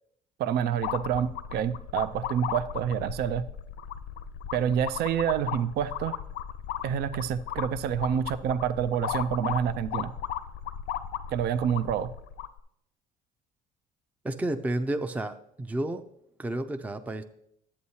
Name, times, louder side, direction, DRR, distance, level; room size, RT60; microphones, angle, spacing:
voice 1, 0.4-3.4 4.5-6.2 6.8-10.1 11.3-12.1, right 9 dB, 70° right, 13 dB, 0.4 m, -28 dB
sound 1, 0.8-12.6, left 10 dB, 85° left, 0.5 m, -36 dB
voice 2, 14.2-16.0 16.4-17.2, right 1 dB, 10° right, 8 dB, 0.4 m, -31 dB
11.0 x 8.5 x 2.8 m, 0.75 s
cardioid pair, 110°, 17 cm